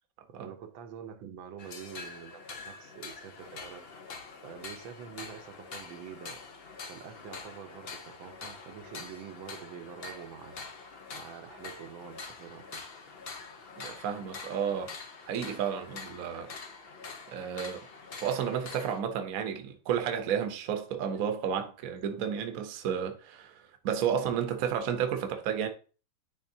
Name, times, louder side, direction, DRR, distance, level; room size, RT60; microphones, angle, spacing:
voice 1, 0.3-3.9 4.4-6.4 6.9-10.6 11.1-12.9, right 8 dB, 85° right, 1.6 m, -46 dB
sound 1, 1.6-19.0, left 4 dB, 60° left, 0.6 m, -45 dB
voice 2, 13.8-14.9 15.3-16.5 17.3-17.9 18.2-25.7, right 8 dB, 55° right, 1.0 m, -32 dB
10.0 x 3.7 x 2.7 m
omnidirectional pair, 2.1 m